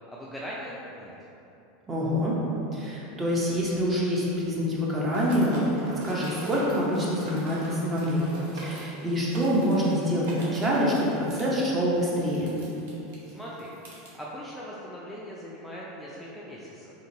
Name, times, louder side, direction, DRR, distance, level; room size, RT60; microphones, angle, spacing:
voice 1, 0.1-1.1 13.2-13.7 14.2-16.9, equal, 5° left, -7 dB, 0.4 m, -40 dB
voice 2, 1.9-2.4 2.7-12.5, equal, 20° right, -5 dB, 0.7 m, -26 dB
sound 1, 5.1-14.1, right 1 dB, 80° right, 0.7 m, -43 dB
2.9 x 2.7 x 2.7 m, 2.9 s
hypercardioid pair, 105°, 0 cm